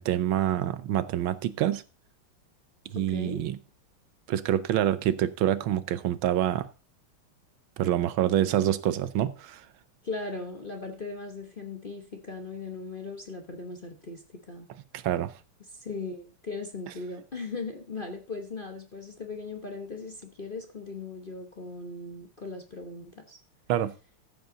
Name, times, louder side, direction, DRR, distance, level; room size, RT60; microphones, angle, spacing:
voice 1, 0.0-1.8 2.9-3.6 4.3-6.7 7.8-9.6 14.9-15.3 23.7-23.9, right 11 dB, 75° right, 1.4 m, -26 dB
voice 2, 2.9-3.5 10.0-14.7 15.7-23.4, left 3 dB, 35° left, 1.0 m, -38 dB
14.0 x 8.0 x 3.9 m
omnidirectional pair, 2.3 m